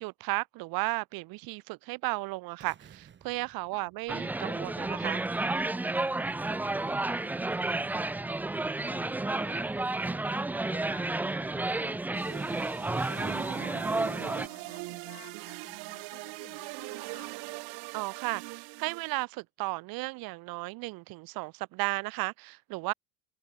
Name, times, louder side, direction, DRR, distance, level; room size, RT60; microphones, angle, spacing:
voice 1, 0.0-5.2 17.9-22.9, right 23 dB, 65° right, 1.5 m, -34 dB
sound 1, 2.6-4.7, right 8 dB, 30° right, 7.0 m, -57 dB
sound 2, 4.1-14.5, right 2 dB, 5° right, 0.4 m, -31 dB
voice 2, 6.5-8.2 8.7-12.7 13.2-17.4, left 34 dB, 85° left, 5.9 m, -54 dB
sound 3, 12.1-19.2, right 32 dB, 80° right, 2.5 m, -41 dB
open air
cardioid pair, 155°, 38 cm